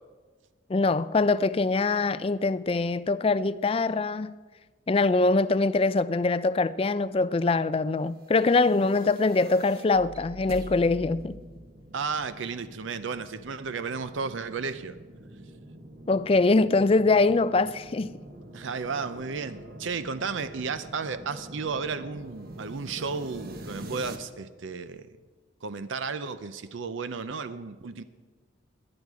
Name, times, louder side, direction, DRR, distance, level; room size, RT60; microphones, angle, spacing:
voice 1, 0.7-4.3 4.9-11.4 16.1-18.1, left 3 dB, 30° left, 0.3 m, -23 dB
sound 1, 8.4-24.2, right 1 dB, 50° right, 1.1 m, -45 dB
voice 2, 11.9-15.0 18.5-25.1 25.6-28.0, right 5 dB, 70° right, 0.6 m, -33 dB
19.0 x 11.0 x 4.8 m
head